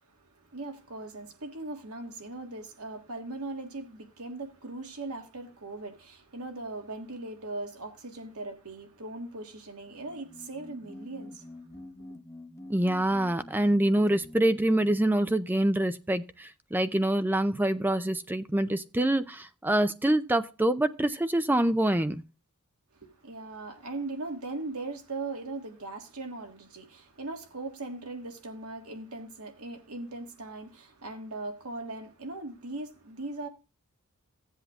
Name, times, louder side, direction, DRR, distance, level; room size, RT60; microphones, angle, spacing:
voice 1, 0.2-11.8 22.9-33.5, right 2 dB, 80° right, 1.6 m, -39 dB
sound 1, 9.9-15.2, left 1 dB, 15° left, 0.8 m, -47 dB
voice 2, 12.7-22.2, right 1 dB, 10° right, 0.4 m, -26 dB
16.0 x 8.0 x 2.4 m
head